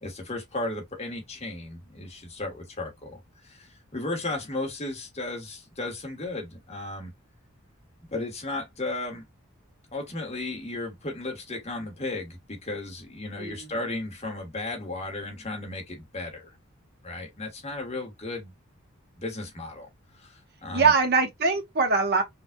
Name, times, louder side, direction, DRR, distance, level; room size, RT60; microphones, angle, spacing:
voice 1, 0.0-7.1 8.1-9.2 9.9-16.5 17.0-18.5 19.2-19.9 20.2-20.9, left 2 dB, 30° left, 1.5 m, -35 dB
voice 2, 13.4-13.7 20.7-22.2, right 4 dB, 50° right, 1.0 m, -22 dB
5.2 x 2.5 x 2.3 m
head